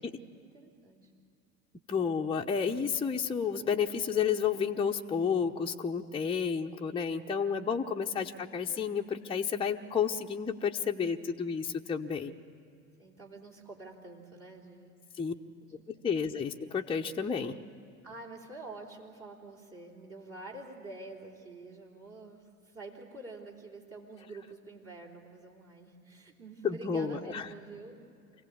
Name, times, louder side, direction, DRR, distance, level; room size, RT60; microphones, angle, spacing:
voice 1, 0.4-1.1 8.1-8.3 13.0-14.9 15.6-16.1 18.0-28.0, right 2 dB, 35° right, -2 dB, 3.5 m, -47 dB
voice 2, 1.9-12.3 15.1-15.3 15.9-17.6 26.6-27.5, left 6 dB, 15° left, 1 dB, 0.8 m, -31 dB
26.5 x 16.5 x 8.5 m, 2.4 s
figure-of-eight pair, 70°, 40 cm